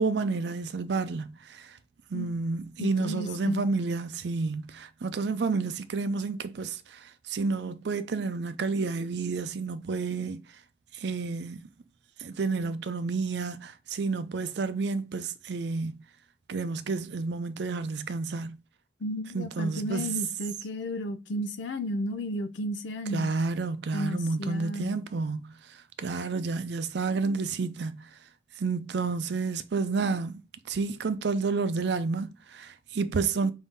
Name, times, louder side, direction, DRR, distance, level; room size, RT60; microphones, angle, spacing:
voice 1, 0.0-1.8 2.1-10.4 10.9-11.6 12.2-16.0 16.5-18.6 19.3-20.1 23.1-25.5 26.0-28.1 28.6-33.5, right 4 dB, 65° right, 0.5 m, -30 dB
voice 2, 2.8-3.7 19.0-23.3 23.9-25.0, left 1 dB, 85° left, 0.5 m, -33 dB
5.3 x 2.7 x 3.5 m
head